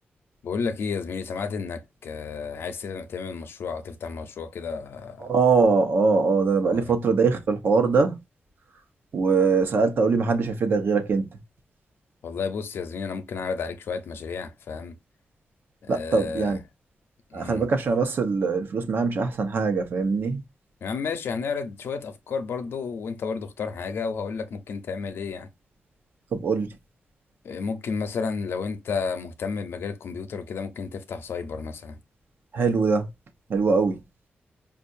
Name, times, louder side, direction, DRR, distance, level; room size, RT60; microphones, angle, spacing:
voice 1, 0.4-5.3 6.7-6.9 12.2-15.0 15.8-16.6 17.3-17.7 20.8-25.5 27.4-32.0, left 5 dB, 90° left, 0.7 m, -32 dB
voice 2, 5.2-8.2 9.1-11.3 15.9-16.6 17.3-20.4 26.3-26.7 32.5-33.1 33.5-34.0, right 4 dB, 60° right, 0.8 m, -22 dB
5.4 x 2.5 x 2.5 m
wide cardioid pair, 170°, 4 cm